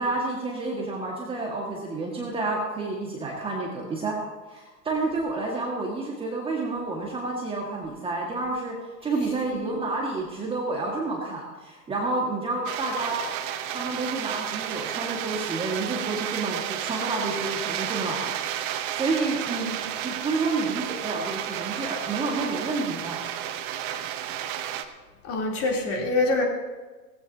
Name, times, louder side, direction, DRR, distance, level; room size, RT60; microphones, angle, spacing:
voice 1, 0.0-4.2 4.5-13.2 13.7-18.4 18.7-19.6 20.0-23.2, right 3 dB, 10° right, -2 dB, 1.8 m, -29 dB
sound 1, 12.6-24.8, right 11 dB, 30° right, 1.0 m, -32 dB
voice 2, 25.2-26.4, left 2 dB, 25° left, 0 dB, 3.3 m, -25 dB
18.0 x 16.0 x 2.8 m, 1.3 s
hypercardioid pair, 125°, 50 cm